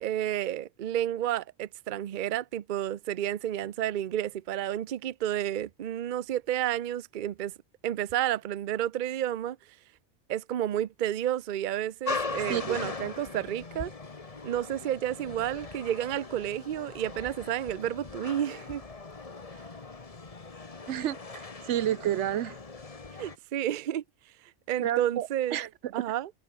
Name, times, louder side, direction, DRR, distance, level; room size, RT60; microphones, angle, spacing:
voice 1, 0.0-7.5 7.8-9.6 10.3-13.9 14.4-18.8 23.2-24.0 24.7-25.6 25.9-26.3, right 11 dB, 50° right, 0.7 m, -31 dB
sound 1, 12.1-23.4, left 4 dB, 30° left, 1.3 m, -40 dB
voice 2, 20.9-22.6 24.8-25.9, right 11 dB, 80° right, 1.0 m, -31 dB
omnidirectional pair, 1.2 m